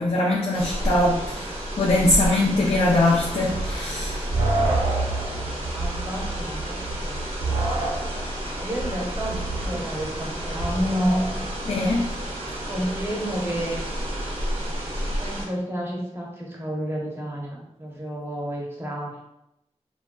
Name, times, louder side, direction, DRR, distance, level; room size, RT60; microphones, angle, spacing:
voice 1, 0.0-4.2 11.7-12.0, left 2 dB, 60° left, -4 dB, 0.5 m, -22 dB
sound 1, 0.5-15.5, equal, 55° right, 0.9 m, -31 dB
sound 2, 3.5-11.6, right 2 dB, 70° right, 0.6 m, -28 dB
voice 2, 5.2-8.0 8.5-11.3 12.7-13.8 15.2-19.2, equal, 20° right, -3 dB, 0.8 m, -30 dB
3.2 x 2.3 x 2.3 m, 0.84 s
wide cardioid pair, 60°, 12 cm